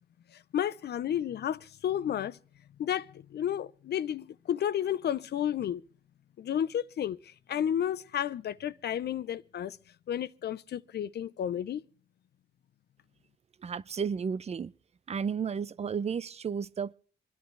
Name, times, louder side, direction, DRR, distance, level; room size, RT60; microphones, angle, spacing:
voice 1, 0.3-2.4 2.8-5.8 6.4-9.8 10.1-11.8, left 10 dB, 55° left, 0.6 m, -32 dB
voice 2, 13.6-14.7 15.1-16.9, right 6 dB, 30° right, 0.5 m, -33 dB
26.5 x 11.0 x 3.3 m
cardioid pair, 90°, 20 cm